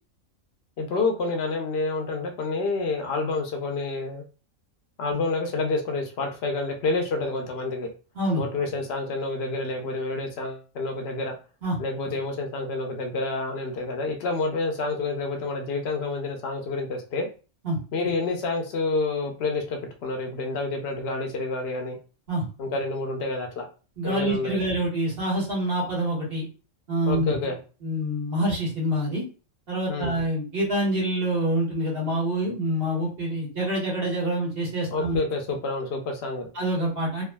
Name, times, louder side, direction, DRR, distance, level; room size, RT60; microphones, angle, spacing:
voice 1, 0.8-4.2 5.0-7.9 8.4-11.3 11.8-17.3 17.9-22.0 22.6-23.7 24.0-24.6 27.1-27.6 29.9-30.2 34.9-36.5, left 3 dB, 55° left, 3 dB, 0.9 m, -28 dB
voice 2, 24.0-26.5 26.9-27.4 27.8-29.2 29.7-35.2 36.5-37.2, right 1 dB, 45° right, -4 dB, 1.6 m, -26 dB
3.4 x 2.3 x 2.2 m, 0.34 s
omnidirectional pair, 1.4 m